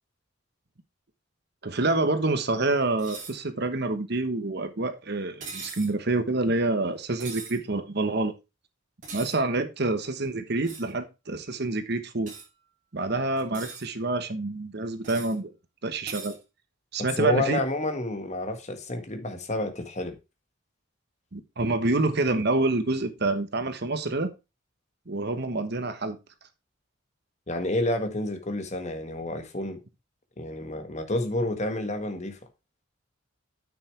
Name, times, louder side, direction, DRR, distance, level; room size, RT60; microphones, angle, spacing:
voice 1, 1.6-8.3 9.1-12.3 12.9-15.5 15.8-16.4 16.9-17.6 21.3-24.3 25.1-26.2, right 2 dB, 55° right, 1.2 m, -27 dB
sound 1, 3.0-3.4 5.4-5.9 7.2-7.6 9.0-9.4 10.6-10.9 12.3-12.5 13.4-13.9 15.0-15.4 16.1-16.4, right 5 dB, 40° right, 5.2 m, -40 dB
voice 2, 17.2-20.2 27.5-29.8 30.4-32.4, left 1 dB, 35° left, 1.7 m, -29 dB
9.8 x 7.1 x 3.4 m
head